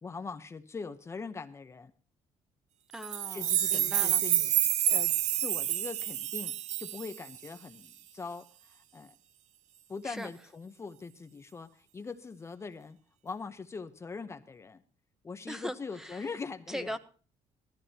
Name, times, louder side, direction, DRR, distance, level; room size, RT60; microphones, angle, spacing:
voice 1, 0.0-1.9 3.3-4.5 4.9-6.5 6.8-9.1 9.9-13.0 13.2-14.8 15.2-17.0, left 4 dB, 20° left, 0.8 m, -42 dB
voice 2, 2.9-4.2 10.0-10.3 15.5-16.3 16.7-17.0, equal, 5° right, 1.0 m, -40 dB
sound 1, 3.0-7.5, right 11 dB, 70° right, 0.8 m, -28 dB
19.0 x 13.5 x 2.8 m
cardioid pair, 155°, 12 cm